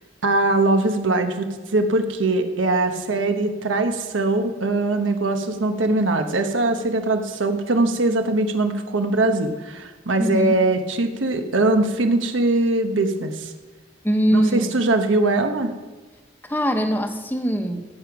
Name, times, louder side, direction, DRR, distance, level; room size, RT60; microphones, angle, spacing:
voice 1, 0.2-13.5 14.3-15.7, right 2 dB, 85° right, 6 dB, 1.1 m, -21 dB
voice 2, 10.2-10.5 14.0-14.7 16.4-18.0, equal, 10° left, 6 dB, 1.0 m, -22 dB
14.0 x 8.7 x 6.0 m, 1.3 s
head